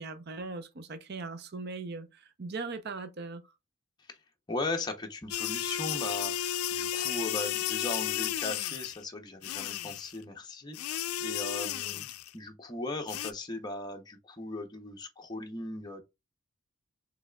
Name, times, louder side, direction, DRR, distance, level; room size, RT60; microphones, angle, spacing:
voice 1, 0.0-3.5, right 3 dB, 50° right, 0.6 m, -39 dB
voice 2, 4.5-12.0 12.3-16.0, left 2 dB, 20° left, 0.6 m, -38 dB
sound 1, 5.3-9.0 9.4-10.2 10.7-12.3 13.1-13.3, left 11 dB, 85° left, 0.4 m, -33 dB
6.0 x 3.2 x 2.2 m
head